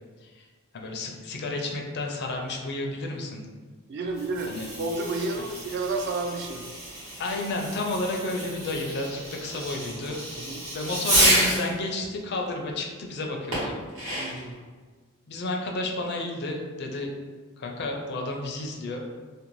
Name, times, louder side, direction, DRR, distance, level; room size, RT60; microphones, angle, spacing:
voice 1, 0.7-3.4 4.5-4.6 7.2-10.2 10.7-13.8 15.3-17.1 17.6-19.1, left 2 dB, 50° left, 1 dB, 0.4 m, -31 dB
voice 2, 3.9-6.6 10.3-10.6 14.2-14.6, right 3 dB, 50° right, 3 dB, 0.3 m, -31 dB
Fireworks, 4.1-11.7 13.5-14.5, right 1 dB, 70° right, 1.1 m, -29 dB
2.6 x 2.1 x 3.0 m, 1.4 s
head